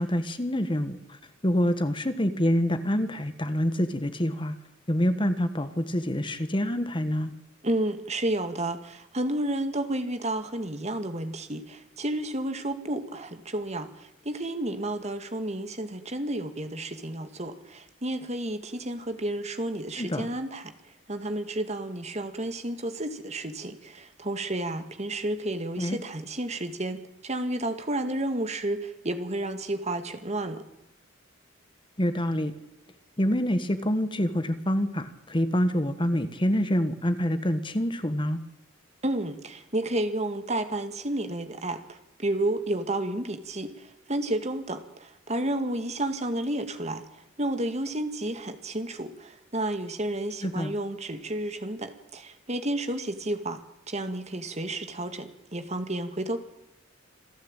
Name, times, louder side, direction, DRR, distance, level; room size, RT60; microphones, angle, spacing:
voice 1, 0.0-4.5 4.9-7.3 20.0-20.3 25.8-26.0 32.0-32.5 33.2-38.4 50.4-50.7, equal, 25° left, 10 dB, 1.4 m, -26 dB
voice 2, 7.6-20.7 21.1-30.6 39.0-47.0 47.4-53.6 53.9-56.4, right 1 dB, 35° right, 8 dB, 2.1 m, -31 dB
27.0 x 14.5 x 9.0 m, 0.92 s
head